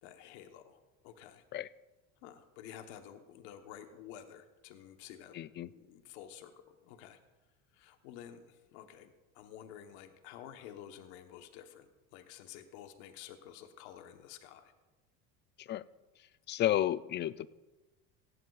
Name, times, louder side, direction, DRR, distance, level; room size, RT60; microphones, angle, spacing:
voice 1, 0.0-1.4 2.2-5.4 5.7-7.2 7.7-14.7, left 10 dB, 80° left, 7 dB, 1.2 m, -51 dB
voice 2, 5.3-5.7 15.6-15.8 16.5-17.5, left 12 dB, 35° left, 17 dB, 0.4 m, -32 dB
17.5 x 14.5 x 2.4 m, 1.2 s
supercardioid pair, 110°, 33 cm